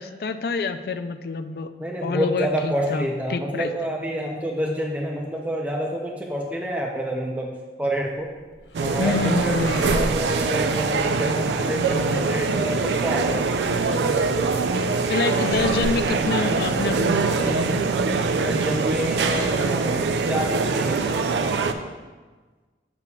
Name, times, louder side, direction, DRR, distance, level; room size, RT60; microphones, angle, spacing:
voice 1, 0.0-1.7 2.0-3.7 9.0-10.0 15.1-17.9, left 4 dB, 60° left, 10 dB, 0.3 m, -27 dB
voice 2, 1.8-8.3 8.8-13.5 15.5-15.7 18.4-20.0 20.3-21.0, equal, 10° right, 0 dB, 0.4 m, -28 dB
sound 1, 8.0-20.1, left 1 dB, 75° left, 0.7 m, -39 dB
sound 2, 8.7-21.7, right 4 dB, 80° right, 0.4 m, -23 dB
6.9 x 6.8 x 2.3 m, 1.4 s
head